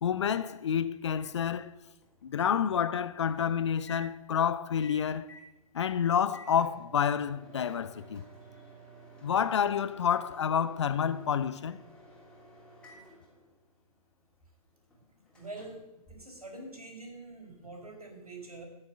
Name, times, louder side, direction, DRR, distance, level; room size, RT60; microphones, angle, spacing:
voice 1, 0.0-1.7 2.2-5.3 5.7-8.2 9.2-11.8, left 8 dB, 50° left, 0.7 m, -29 dB
Microwave oven, 1.5-16.9, right 1 dB, 5° left, 3.1 m, -55 dB
voice 2, 15.3-15.8 16.1-18.7, right 2 dB, 75° right, 5.2 m, -45 dB
13.0 x 7.2 x 7.8 m
figure-of-eight pair, 125°, 19 cm